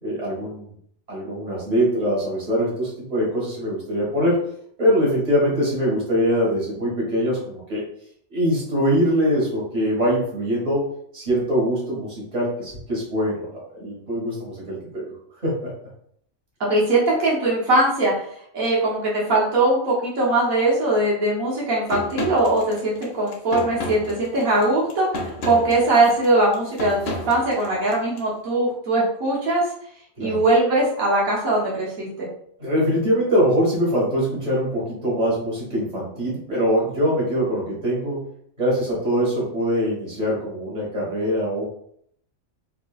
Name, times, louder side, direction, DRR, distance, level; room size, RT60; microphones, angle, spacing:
voice 1, 0.0-0.7 1.1-4.4 4.8-7.8 8.3-10.8 11.1-13.5 13.8-15.1 15.4-15.7 30.2-30.4 32.6-38.2 38.6-41.6, equal, 30° right, -5 dB, 1.7 m, -23 dB
voice 2, 16.7-18.3 18.5-29.6 30.2-32.3, right 2 dB, 75° right, -5 dB, 1.5 m, -21 dB
sound 1, 21.9-28.2, left 1 dB, 65° left, 1.1 m, -32 dB
4.5 x 2.8 x 2.4 m, 0.67 s
omnidirectional pair, 1.5 m